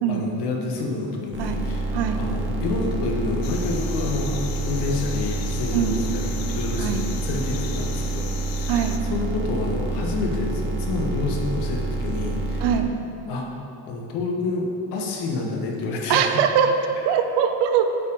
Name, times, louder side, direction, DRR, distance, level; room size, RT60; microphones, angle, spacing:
voice 1, 0.1-1.9 2.1-8.3 8.6-12.6 13.3-13.5 13.9-16.4, left 3 dB, 80° left, 0 dB, 1.2 m, -28 dB
sound 1, 1.3-12.8, right 2 dB, 30° right, 0.8 m, -28 dB
sound 2, 3.4-9.0, left 8 dB, 60° left, 0.5 m, -38 dB
voice 2, 16.1-16.7 17.0-17.9, right 8 dB, 80° right, 7 dB, 0.6 m, -22 dB
8.0 x 4.6 x 3.7 m, 2.8 s
cardioid pair, 140°, 40 cm